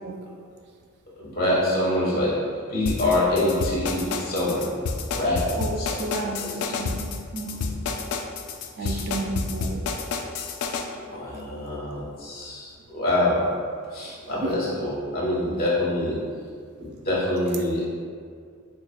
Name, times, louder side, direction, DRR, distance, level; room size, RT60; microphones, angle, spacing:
voice 1, 1.2-4.7 5.1-6.0 6.4-6.7 8.8-9.0 10.9-13.5 13.9-16.2 16.8-17.9, left 1 dB, 45° left, -6 dB, 1.1 m, -25 dB
sound 1, 2.9-10.8, left 4 dB, 90° left, 0.3 m, -29 dB
voice 2, 6.0-6.4 6.7-7.7 8.8-9.8 14.4-14.5, right 2 dB, 50° right, 3 dB, 0.3 m, -32 dB
4.2 x 3.2 x 2.2 m, 2.1 s
head